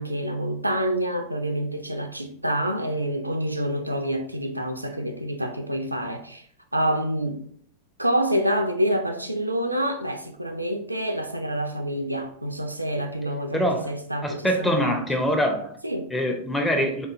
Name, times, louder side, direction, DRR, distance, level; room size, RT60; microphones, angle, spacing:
voice 1, 0.0-6.5 6.7-7.4 8.0-15.0 15.8-16.1, right 1 dB, 85° right, 0.3 m, -27 dB
voice 2, 13.5-13.9 14.2-15.7 16.1-17.1, equal, 5° left, 0.6 m, -24 dB
3.9 x 2.7 x 2.5 m
figure-of-eight pair, 90°, 0 cm